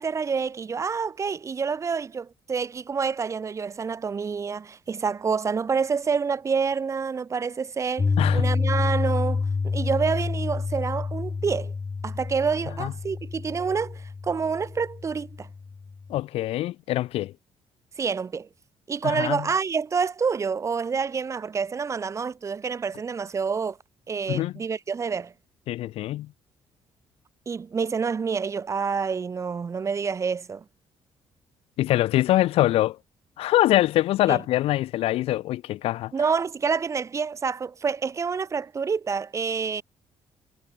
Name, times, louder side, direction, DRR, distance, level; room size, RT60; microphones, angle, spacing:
voice 1, 0.0-11.7 12.0-15.5 18.0-18.5 18.9-23.8 24.1-25.3 27.5-30.6 34.3-34.4 36.1-39.8, right 5 dB, 30° right, 1.0 m, -28 dB
Piano, 8.0-16.1, left 4 dB, 20° left, 0.5 m, -28 dB
voice 2, 8.2-8.5 12.8-12.9 16.1-17.3 19.0-19.5 24.3-24.5 25.7-26.3 31.8-33.0 33.4-36.1, left 15 dB, 75° left, 0.4 m, -24 dB
cardioid pair, 130°, 10 cm